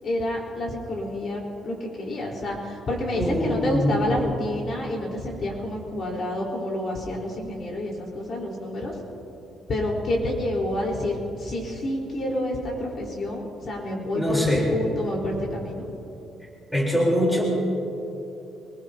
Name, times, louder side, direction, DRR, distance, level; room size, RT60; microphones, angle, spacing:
voice 1, 0.0-9.0 9.7-15.8, left 1 dB, 45° left, -1 dB, 4.2 m, -28 dB
voice 2, 3.1-4.2 14.1-14.7 16.7-17.4, equal, 5° left, -3 dB, 3.8 m, -23 dB
24.5 x 21.0 x 2.9 m, 2.9 s
cardioid pair, 140°, 0 cm